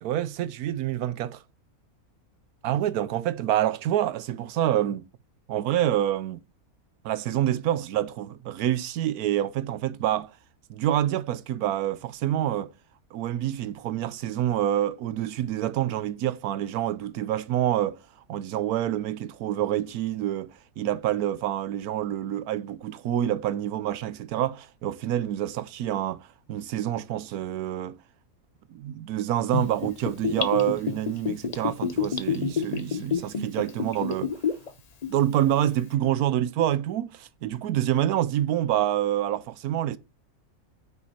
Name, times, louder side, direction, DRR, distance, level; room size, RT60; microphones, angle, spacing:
voice 1, 0.0-1.4 2.6-5.0 5.5-6.4 7.0-10.3 10.7-12.7 13.1-18.0 18.3-28.0 28.7-34.4 35.1-40.0, right 12 dB, 90° right, 1.2 m, -27 dB
Gurgling / Bathtub (filling or washing), 29.5-34.7 35.0-35.1, left 6 dB, 40° left, 0.5 m, -28 dB
9.2 x 5.8 x 4.2 m
omnidirectional pair, 1.5 m